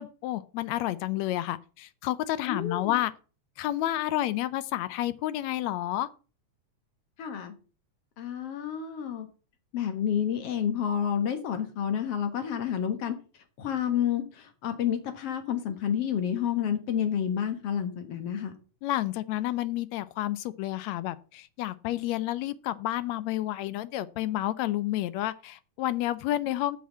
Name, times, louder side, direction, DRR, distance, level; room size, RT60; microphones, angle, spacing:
voice 1, 0.0-3.1 3.6-6.1 18.8-26.8, left 14 dB, 80° left, 16 dB, 1.7 m, -30 dB
voice 2, 2.4-3.0 7.2-7.5 8.2-9.3 9.7-13.2 13.6-18.5, left 9 dB, 55° left, 8 dB, 2.2 m, -29 dB
8.7 x 5.9 x 7.2 m, 0.36 s
omnidirectional pair, 3.5 m